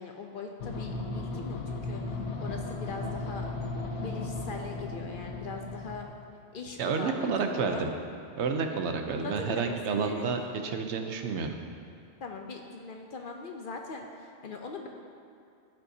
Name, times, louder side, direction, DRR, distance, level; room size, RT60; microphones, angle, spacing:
voice 1, 0.0-3.4 4.0-6.2 6.5-7.9 9.2-10.3 12.2-14.9, left 4 dB, 55° left, 3 dB, 0.7 m, -41 dB
sound 1, 0.6-6.1, left 3 dB, 85° left, 1.1 m, -36 dB
voice 2, 6.8-7.9 8.3-11.5, right 5 dB, 75° right, 5 dB, 0.9 m, -30 dB
13.5 x 5.4 x 2.7 m, 2.5 s
omnidirectional pair, 1.2 m